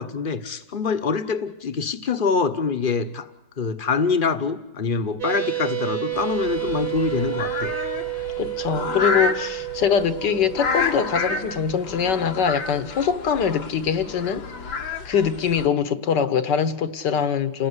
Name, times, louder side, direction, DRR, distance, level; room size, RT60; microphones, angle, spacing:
voice 1, 0.0-3.3 3.6-7.8, left 5 dB, 30° left, 1.1 m, -25 dB
sound 1, 5.2-13.3, right 15 dB, 45° right, 2.4 m, -31 dB
sound 2, 6.1-15.7, left 3 dB, 85° left, 2.6 m, -30 dB
voice 2, 8.4-14.4 15.1-17.7, left 7 dB, 65° left, 1.9 m, -23 dB
29.0 x 19.0 x 9.9 m
omnidirectional pair, 2.1 m